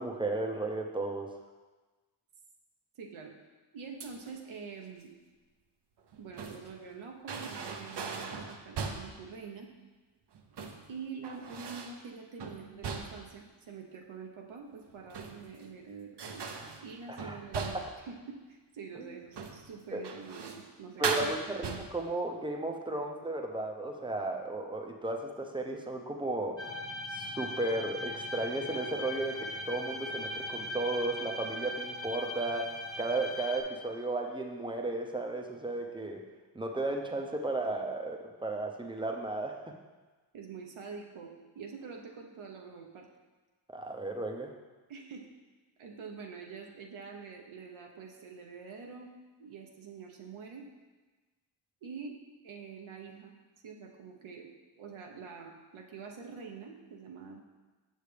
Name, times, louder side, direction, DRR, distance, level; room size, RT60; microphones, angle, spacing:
voice 1, 0.0-1.3 17.1-17.7 18.9-19.1 19.9-20.0 21.0-26.7 27.1-36.2 36.5-39.7 43.7-44.5, right 2 dB, 10° right, 2 dB, 0.7 m, -34 dB
voice 2, 3.0-3.3 3.7-5.1 6.2-9.7 10.9-16.4 16.8-17.8 18.1-21.0 40.3-43.1 44.9-45.3 45.8-49.1 49.4-50.7 51.8-52.2 52.4-53.3 53.6-57.4, right 5 dB, 80° right, 1 dB, 1.0 m, -46 dB
sound 1, 4.0-4.4 6.0-6.7 7.3-9.2 10.3-10.9 11.2-12.0 12.4-13.4 14.9-15.6 16.2-18.0 19.3-19.7 20.0-20.7 21.0-22.1, right 5 dB, 55° right, 0.7 m, -38 dB
sound 2, 26.6-33.6, left 1 dB, 10° left, 1.2 m, -39 dB
6.6 x 6.6 x 3.3 m, 1.3 s
wide cardioid pair, 90°, 48 cm